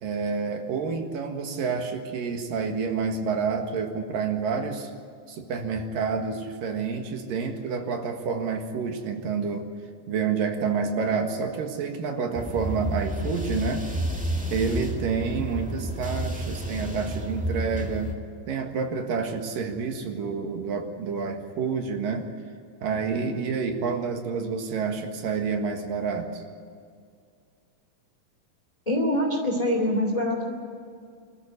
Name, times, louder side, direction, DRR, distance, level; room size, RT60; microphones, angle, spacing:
voice 1, 0.0-4.9 5.3-9.7 10.1-13.9 14.5-18.1 18.5-22.3 22.8-26.4, right 5 dB, 75° right, 4 dB, 3.4 m, -28 dB
sound 1, 12.3-18.1, equal, 5° right, 0.8 m, -31 dB
voice 2, 28.9-30.5, left 1 dB, 10° left, 2 dB, 2.2 m, -24 dB
25.0 x 14.0 x 9.8 m, 2.3 s
omnidirectional pair, 4.0 m